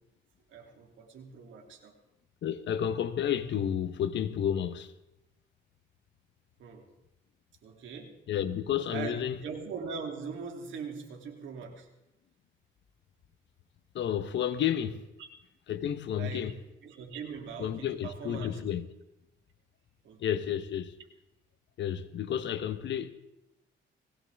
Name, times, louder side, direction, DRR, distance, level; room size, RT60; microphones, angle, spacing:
voice 1, 0.5-1.9 6.6-6.9 7.6-8.2 8.9-11.9 15.2-15.3 16.1-16.5 16.8-18.6 20.0-20.4, right 5 dB, 75° right, 3.1 m, -41 dB
voice 2, 2.4-4.9 8.3-9.4 13.9-15.1 15.7-16.6 17.6-18.9 20.2-21.0 21.8-23.1, left 9 dB, 65° left, 1.1 m, -31 dB
20.0 x 16.5 x 3.6 m
cardioid pair, 90°, 20 cm